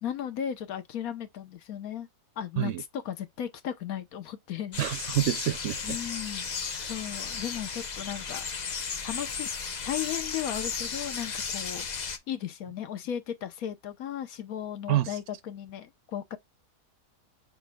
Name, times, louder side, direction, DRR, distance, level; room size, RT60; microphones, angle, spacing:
voice 1, 0.0-2.1 2.4-4.8 5.8-6.5 6.9-8.4 9.0-9.5 9.8-16.4, left 10 dB, 75° left, 1.2 m, -36 dB
sound 1, 4.7-12.2, left 5 dB, 45° left, 0.6 m, -34 dB
voice 2, 4.8-6.0 6.7-6.9 14.9-15.2, right 13 dB, 65° right, 0.8 m, -28 dB
5.9 x 3.9 x 2.2 m
omnidirectional pair, 1.6 m